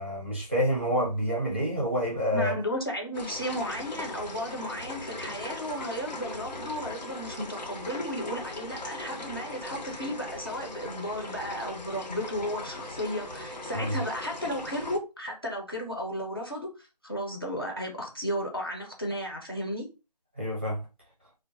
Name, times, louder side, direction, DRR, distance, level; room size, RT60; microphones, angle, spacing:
voice 1, 0.0-2.5 13.7-14.0 20.4-20.8, equal, 15° right, 0.6 m, -28 dB
voice 2, 2.3-16.7 17.0-19.9, equal, 35° left, 0.6 m, -34 dB
sound 1, 3.1-15.0, left 2 dB, 85° left, 0.7 m, -39 dB
2.3 x 2.0 x 3.8 m
figure-of-eight pair, 175°, 21 cm